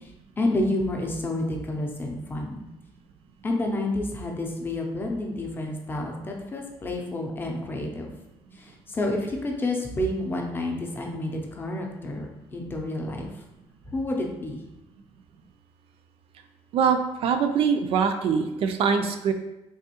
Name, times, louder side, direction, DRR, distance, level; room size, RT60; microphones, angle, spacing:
voice 1, 0.4-2.6 3.4-8.1 8.9-13.3 13.9-14.6, left 1 dB, 20° left, 1 dB, 0.5 m, -29 dB
voice 2, 16.7-19.3, right 6 dB, 60° right, 7 dB, 0.4 m, -23 dB
3.4 x 3.0 x 2.9 m, 0.94 s
cardioid pair, 135°, 11 cm